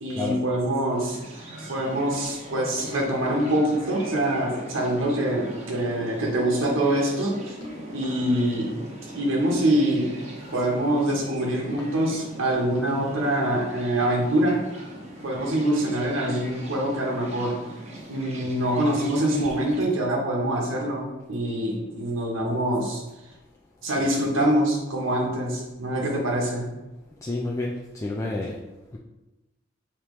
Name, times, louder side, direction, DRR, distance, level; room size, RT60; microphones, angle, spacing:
voice 1, 0.0-7.6 7.9-8.8 9.1-10.1 10.5-14.6 15.2-17.6 18.1-23.0 23.8-26.7, right 1 dB, 80° right, -2 dB, 0.9 m, -25 dB
sound 1, 0.9-19.9, right 1 dB, 35° right, 0.9 m, -40 dB
voice 2, 27.2-28.6, left 2 dB, 15° left, -3 dB, 0.4 m, -30 dB
5.2 x 2.9 x 3.1 m, 1.0 s
head